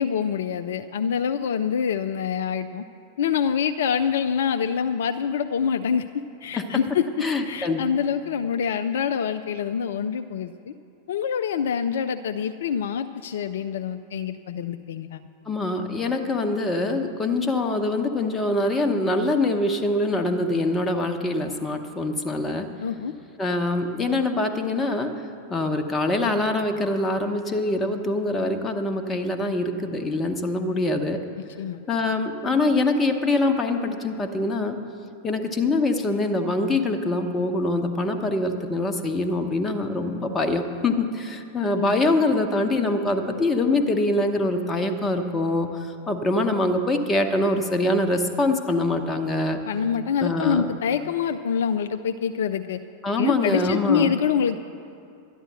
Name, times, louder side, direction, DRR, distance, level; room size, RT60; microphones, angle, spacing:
voice 1, 0.0-2.8 3.2-6.1 6.4-7.1 7.5-10.7 11.1-15.2 22.8-23.1 31.6-31.8 41.8-42.0 49.6-52.8 53.2-54.6, left 7 dB, 60° left, 8 dB, 0.4 m, -25 dB
voice 2, 7.2-7.8 15.5-22.7 23.4-25.1 25.5-31.2 31.9-34.8 35.2-45.7 46.1-49.6 50.2-50.7 53.0-54.1, left 2 dB, 15° left, 5 dB, 1.0 m, -24 dB
12.0 x 10.0 x 6.5 m, 2.5 s
figure-of-eight pair, 90°, 0 cm